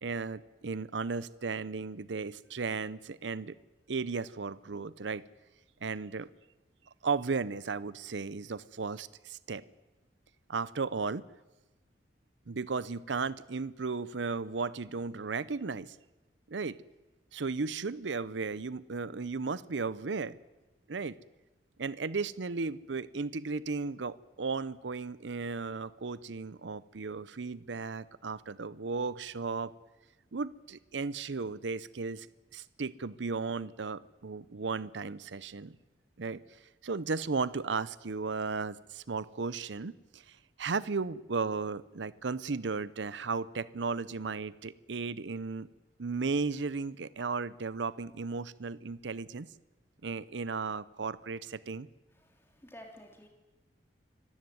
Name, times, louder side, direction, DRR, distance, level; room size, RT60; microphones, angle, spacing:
voice 1, 0.0-3.5 3.9-5.2 5.8-6.3 7.0-9.6 10.5-11.2 12.5-16.0 16.5-16.8 17.3-20.4 20.9-21.2 21.8-29.7 30.3-32.3 32.5-35.8 36.2-45.7 46.0-49.5 50.0-51.9, right 4 dB, 80° right, 18 dB, 0.7 m, -35 dB
voice 2, 52.1-53.3, equal, 15° left, 2 dB, 3.3 m, -52 dB
25.0 x 14.5 x 9.4 m, 1.1 s
head